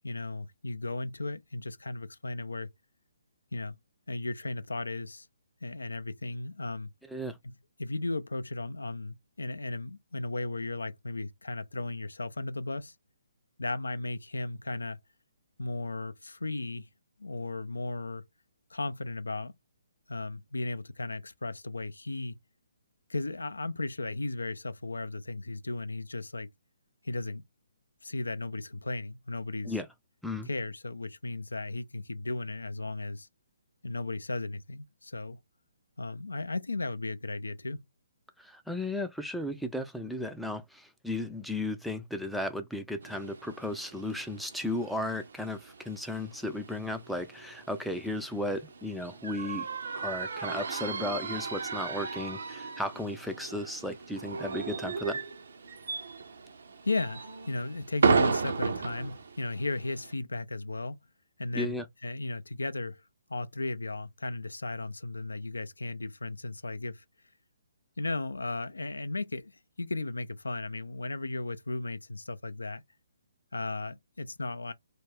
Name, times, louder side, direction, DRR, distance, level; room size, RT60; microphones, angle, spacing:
voice 1, 0.0-2.7 3.5-3.8 4.1-5.3 5.6-6.9 7.4-12.9 13.6-15.0 15.6-16.9 17.2-18.2 18.7-19.5 20.1-22.4 23.1-26.5 27.0-27.4 28.0-29.8 30.5-33.3 33.8-35.4 36.0-37.8 56.8-61.0 61.4-63.0 63.3-67.0 68.0-72.8 73.5-74.7, left 2 dB, 80° left, 0.3 m, -35 dB
voice 2, 38.4-49.7 49.9-55.2 61.5-61.9, left 1 dB, ahead, 0.3 m, -35 dB
sound 1, 43.0-60.1, right 5 dB, 60° right, 0.5 m, -35 dB
2.3 x 2.1 x 3.4 m
figure-of-eight pair, 135°, 0 cm